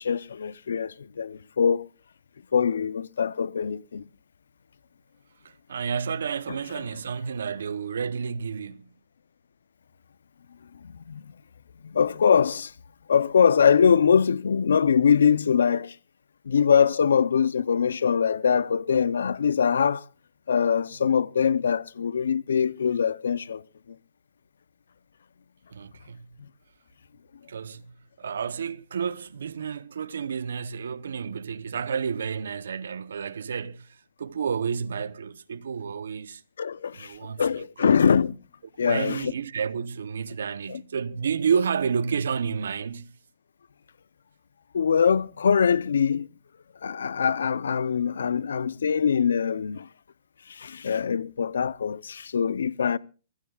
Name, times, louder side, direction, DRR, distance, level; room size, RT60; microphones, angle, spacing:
voice 1, 0.0-1.9 2.5-4.1 10.8-11.2 11.8-12.7 13.1-15.9 16.5-20.1 20.5-23.6 36.6-38.4 38.8-39.3 40.7-40.8 44.7-46.3 46.8-49.9 50.5-53.0, left 7 dB, 90° left, 0.6 m, -23 dB
voice 2, 5.4-8.9 25.7-26.3 27.5-33.9 34.2-36.4 36.9-37.9 38.8-43.1, right 6 dB, 75° right, 0.8 m, -30 dB
27.5 x 15.5 x 2.4 m
hypercardioid pair, 175°, 0 cm